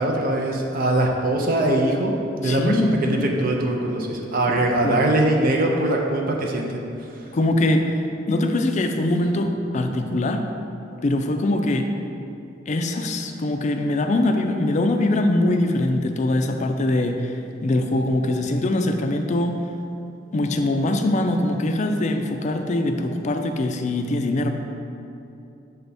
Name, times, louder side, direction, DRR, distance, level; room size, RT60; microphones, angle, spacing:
voice 1, 0.0-2.1 2.4-6.7, right 1 dB, 50° right, 0 dB, 0.5 m, -22 dB
voice 2, 2.4-3.0 4.8-5.0 7.3-10.4 11.0-11.9 12.7-17.4 17.6-19.6 20.3-24.5, left 1 dB, 40° left, 6 dB, 0.4 m, -22 dB
6.8 x 3.4 x 4.1 m, 2.8 s
head